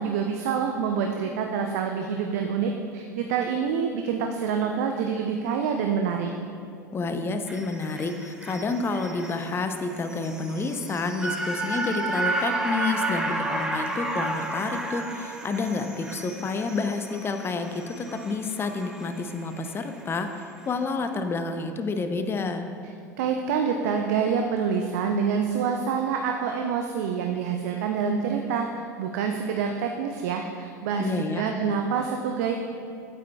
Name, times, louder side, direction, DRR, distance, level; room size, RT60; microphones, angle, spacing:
voice 1, 0.0-6.3 23.2-28.7 29.0-32.5, right 6 dB, 65° right, 3 dB, 0.5 m, -27 dB
voice 2, 6.9-22.6 31.0-31.5, left 3 dB, 25° left, 7 dB, 0.6 m, -29 dB
sound 1, 7.5-19.8 20.2-20.3, right 2 dB, 10° right, 0.8 m, -32 dB
8.8 x 8.3 x 2.3 m, 2.4 s
hypercardioid pair, 75°, 9 cm